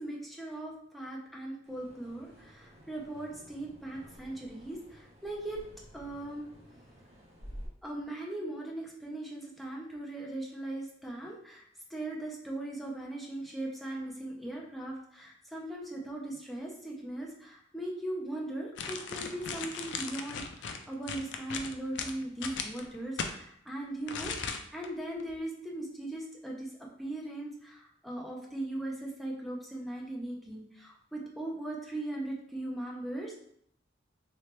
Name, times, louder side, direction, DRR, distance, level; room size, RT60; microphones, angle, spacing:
voice 1, 0.0-5.6 5.9-6.5 7.8-11.6 11.9-33.4, right 1 dB, ahead, -3 dB, 0.6 m, -39 dB
sound 1, 1.6-7.7, equal, 35° right, 1.0 m, -51 dB
sound 2, 18.8-23.3 24.1-24.9 25.2-25.3, left 5 dB, 70° left, 0.4 m, -37 dB
3.1 x 2.9 x 3.2 m, 0.68 s
head